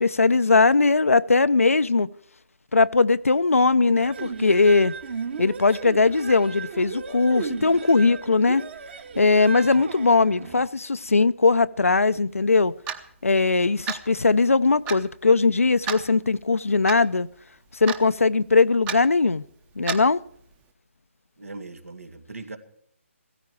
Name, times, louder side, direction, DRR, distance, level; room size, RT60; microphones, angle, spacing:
voice 1, 0.0-2.1 2.7-5.0 5.4-8.6 9.2-12.7 13.2-17.3 17.8-19.4 19.8-20.2, left 3 dB, 90° left, 0.6 m, -20 dB
sound 1, 3.9-10.6, right 5 dB, 50° right, 1.8 m, -35 dB
voice 2, 9.3-9.8 21.4-22.6, right 3 dB, 80° right, 2.4 m, -40 dB
Clock, 12.9-13.1 13.9-14.1 14.9-15.0 15.9-16.1 16.9-17.0 17.9-18.1 18.9-19.0 19.9-20.1, right 7 dB, 15° right, 0.8 m, -30 dB
16.5 x 14.0 x 4.7 m
figure-of-eight pair, 150°, 7 cm